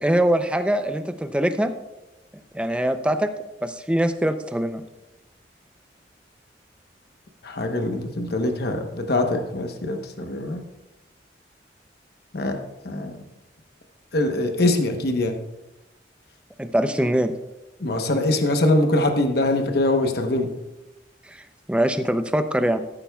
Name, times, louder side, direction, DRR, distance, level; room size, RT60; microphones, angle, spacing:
voice 1, 0.0-1.7 2.5-3.3 3.6-4.8 16.6-17.3 21.3-22.8, right 1 dB, 5° right, 9 dB, 0.5 m, -23 dB
voice 2, 7.4-10.6 12.3-12.6 12.8-13.2 14.1-15.4 17.8-20.5, left 2 dB, 60° left, 5 dB, 1.0 m, -23 dB
13.5 x 11.5 x 2.3 m, 0.98 s
head